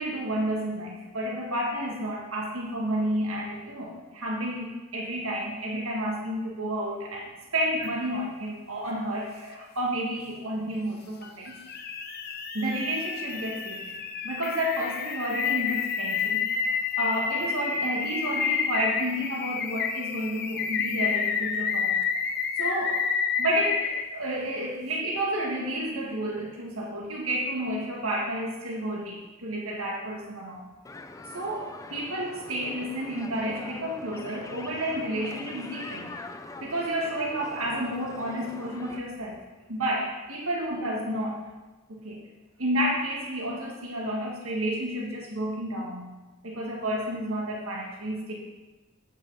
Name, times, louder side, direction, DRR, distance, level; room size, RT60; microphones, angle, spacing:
voice 1, 0.0-11.6 12.5-14.0 14.2-23.1 23.4-30.6 31.3-36.1 36.6-39.4 39.7-41.4 41.9-42.2 42.6-46.1 46.4-48.3, right 1 dB, 85° right, -1 dB, 1.7 m, -31 dB
sound 1, 7.8-7.9 11.2-24.1, left 6 dB, 50° left, 0.7 m, -29 dB
sound 2, 30.8-39.0, left 2 dB, 15° left, 0.4 m, -43 dB
7.9 x 7.2 x 5.5 m, 1.2 s
head